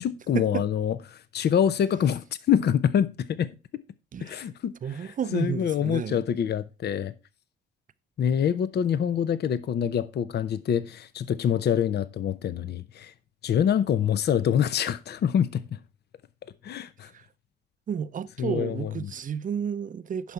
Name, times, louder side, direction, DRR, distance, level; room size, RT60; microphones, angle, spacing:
voice 1, 0.0-3.5 4.2-7.1 8.2-13.1 13.4-15.8 16.6-17.1 18.4-19.1, left 8 dB, 55° left, 0.7 m, -26 dB
voice 2, 4.1-4.5 4.8-6.2 17.1-17.3 17.9-20.3, right 7 dB, 40° right, 0.6 m, -32 dB
10.5 x 5.7 x 4.5 m
cardioid pair, 90°, 20 cm